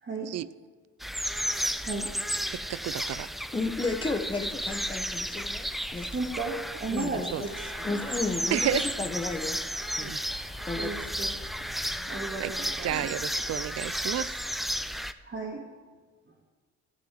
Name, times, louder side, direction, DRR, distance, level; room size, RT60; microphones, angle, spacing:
voice 1, 0.0-0.3 1.8-2.1 6.1-8.2 10.8-11.4 12.1-13.1 15.2-15.6, right 3 dB, 35° right, -4 dB, 2.1 m, -35 dB
sound 1, 1.0-15.1, equal, ahead, 0.4 m, -33 dB
voice 2, 2.5-3.3 7.3-7.4 8.5-8.8 10.0-10.2 12.4-12.5 12.8-14.4, right 12 dB, 55° right, 18 dB, 0.5 m, -31 dB
voice 3, 3.5-6.1 6.9-7.3 7.8-9.6 10.0-10.1 10.7-11.1, left 3 dB, 15° left, 7 dB, 1.3 m, -33 dB
sound 2, 7.4-12.5, left 3 dB, 50° left, 1.9 m, -49 dB
13.5 x 6.2 x 7.6 m, 1.4 s
cardioid pair, 90°, 30 cm